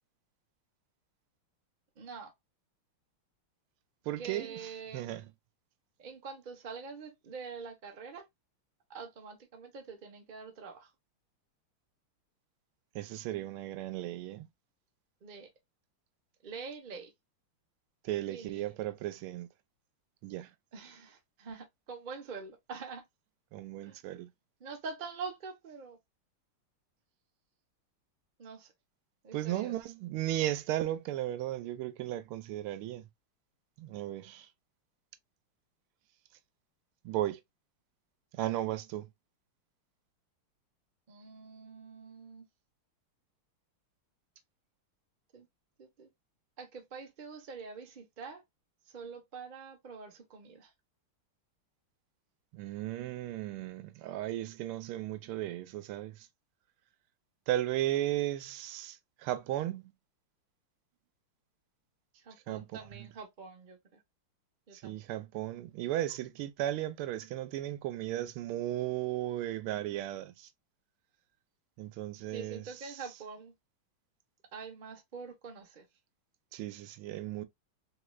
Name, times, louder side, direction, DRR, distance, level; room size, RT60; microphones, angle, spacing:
voice 1, 2.0-2.3 4.2-5.1 6.0-8.3 8.9-10.9 15.2-15.5 16.4-17.1 18.3-18.8 20.7-23.1 23.8-24.0 24.6-26.0 28.4-28.7 29.2-29.8 41.1-42.5 45.3-45.5 45.8-46.1 46.6-48.4 48.8-50.7 62.1-64.0 64.7-65.0 72.3-73.5 74.5-75.9, right 5 dB, 60° right, 0.5 m, -45 dB
voice 2, 4.1-4.6 4.9-5.2 12.9-14.5 18.0-19.5 20.2-20.5 23.5-24.3 29.3-33.1 33.8-34.5 37.0-37.4 38.3-39.1 52.5-56.3 57.5-59.9 62.5-62.6 64.7-70.5 71.8-72.7 76.5-77.4, right 13 dB, 85° right, 1.5 m, -35 dB
3.7 x 3.1 x 2.2 m
omnidirectional pair, 2.3 m